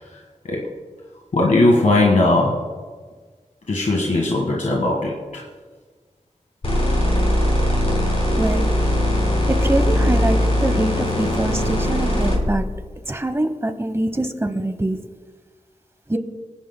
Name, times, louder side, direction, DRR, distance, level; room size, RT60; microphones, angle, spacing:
voice 1, 1.3-2.7 3.7-5.4, left 2 dB, 75° left, -2 dB, 1.6 m, -18 dB
sound 1, 6.6-12.4, left 1 dB, 50° left, 4.3 m, -20 dB
voice 2, 8.4-8.7 9.5-12.6 13.1-15.0 16.1-16.2, right 1 dB, 20° right, 9 dB, 1.0 m, -24 dB
24.5 x 10.0 x 2.2 m, 1.5 s
wide cardioid pair, 80°, 13 cm